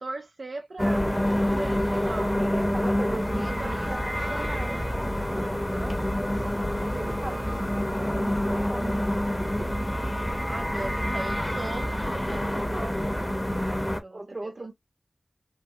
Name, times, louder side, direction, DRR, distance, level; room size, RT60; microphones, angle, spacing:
voice 1, 0.0-4.3 4.7-5.2 5.8-6.0 6.3-6.5 9.6-9.8 10.2-14.7, right 2 dB, 70° right, 0.4 m, -40 dB
sound 1, 0.8-14.0, left 1 dB, 5° left, 0.6 m, -27 dB
voice 2, 2.5-4.8 6.3-9.1 9.4-9.7 14.1-14.7, right 2 dB, 45° right, 0.9 m, -38 dB
3.3 x 2.0 x 2.7 m
wide cardioid pair, 80°, 0 cm